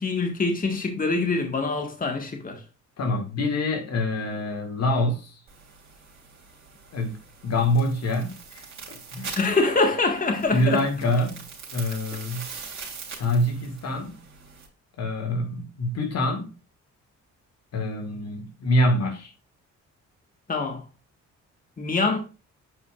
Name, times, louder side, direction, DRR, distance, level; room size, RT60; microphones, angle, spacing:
voice 1, 0.0-2.6 9.3-10.8 20.5-20.8 21.8-22.2, left 3 dB, 30° left, 1.6 m, -24 dB
voice 2, 3.0-5.4 6.9-9.4 10.5-12.4 13.2-14.2 15.0-16.6 17.7-19.3, left 1 dB, 60° left, 2.0 m, -26 dB
sound 1, 5.5-14.7, right 5 dB, 45° right, 3.1 m, -43 dB
8.5 x 5.2 x 2.4 m
cardioid pair, 90°, 30 cm